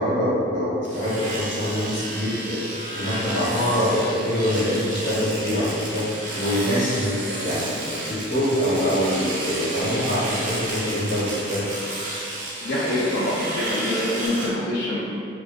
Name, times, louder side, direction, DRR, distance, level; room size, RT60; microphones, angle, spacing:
voice 1, 0.0-2.6 3.0-6.1 6.3-11.6, equal, 85° left, -9 dB, 0.9 m, -24 dB
Domestic sounds home sounds, 0.8-14.5, right 1 dB, 45° right, 0.4 m, -32 dB
voice 2, 12.6-15.0, left 1 dB, 60° left, -9 dB, 0.3 m, -25 dB
2.5 x 2.2 x 2.4 m, 2.5 s
head